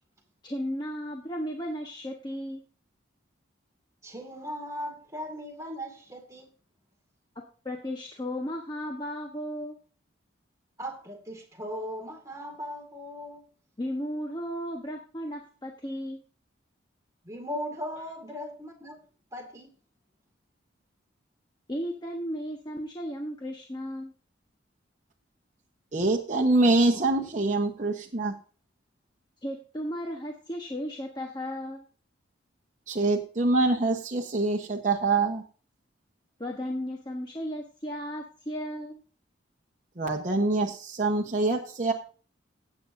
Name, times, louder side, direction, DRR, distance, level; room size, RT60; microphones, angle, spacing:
voice 1, 0.4-2.6 7.6-9.8 13.8-16.2 21.7-24.1 29.4-31.8 36.4-39.0, equal, 20° left, 1.1 m, -35 dB
voice 2, 4.0-6.5 10.8-13.4 17.2-19.0 19.3-19.7, equal, 15° right, 2.0 m, -38 dB
voice 3, 25.9-28.3 32.9-35.4 40.0-41.9, right 2 dB, 40° right, 1.1 m, -25 dB
16.5 x 8.4 x 2.6 m
head